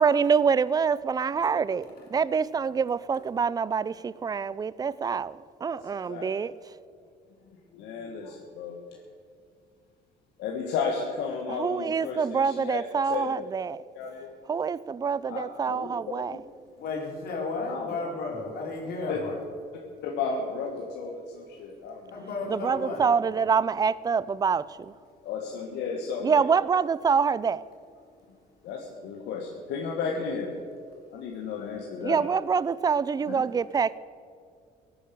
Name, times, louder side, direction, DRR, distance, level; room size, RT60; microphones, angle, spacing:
voice 1, 0.0-1.8 2.1-5.3 5.6-6.5 11.6-13.3 13.5-13.8 14.5-16.3 22.5-24.6 26.2-27.6 32.0-34.0, right 6 dB, 20° right, 19 dB, 0.4 m, -25 dB
voice 2, 5.7-6.3 7.7-9.0 10.4-13.5 13.9-14.3 15.3-16.4 17.6-18.0 18.9-19.2 20.0-22.5 25.2-26.4 28.6-30.6 31.1-32.3 33.3-33.4, left 5 dB, 85° left, 0 dB, 1.6 m, -34 dB
voice 3, 16.8-19.3 22.1-23.1, left 3 dB, 65° left, -1 dB, 4.1 m, -33 dB
17.0 x 9.8 x 6.9 m, 2.2 s
cardioid pair, 110°, 17 cm